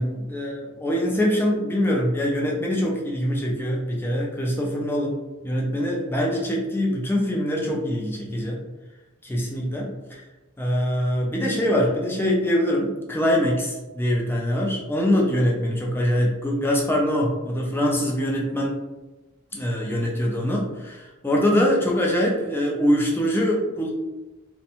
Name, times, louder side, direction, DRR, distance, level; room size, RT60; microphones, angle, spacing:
voice 1, 0.0-5.2 5.4-8.6 9.2-10.2 10.6-18.8 19.5-23.9, equal, 10° left, -2 dB, 0.4 m, -23 dB
2.5 x 2.1 x 2.8 m, 1.1 s
head